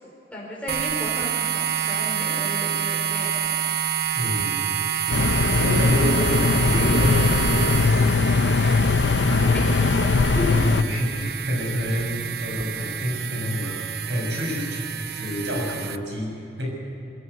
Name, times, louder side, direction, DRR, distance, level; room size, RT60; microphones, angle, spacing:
voice 1, 0.0-3.6 9.3-10.8, left 1 dB, 5° left, -4 dB, 4.8 m, -34 dB
sound 1, 0.7-16.0, right 8 dB, 60° right, 0.6 m, -28 dB
voice 2, 4.1-5.3 5.6-8.0 10.6-16.7, equal, 80° right, -1 dB, 6.8 m, -29 dB
sound 2, 5.1-10.8, left 3 dB, 90° left, 0.7 m, -20 dB
22.0 x 15.5 x 8.2 m, 2.9 s
head